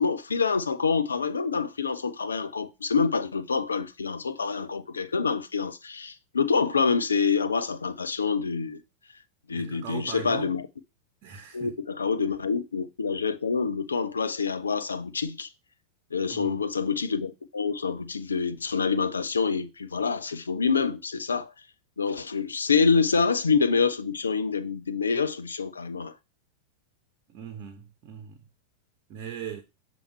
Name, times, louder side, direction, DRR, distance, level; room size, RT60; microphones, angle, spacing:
voice 1, 0.0-8.8 9.5-10.6 11.5-15.5 16.1-21.5 22.0-26.1, left 5 dB, 75° left, 0.5 m, -26 dB
voice 2, 9.5-10.6 11.2-11.7 16.2-16.6 27.3-28.5 29.1-29.6, right 8 dB, 40° right, 1.0 m, -40 dB
7.0 x 3.0 x 5.5 m
figure-of-eight pair, 90°, 0 cm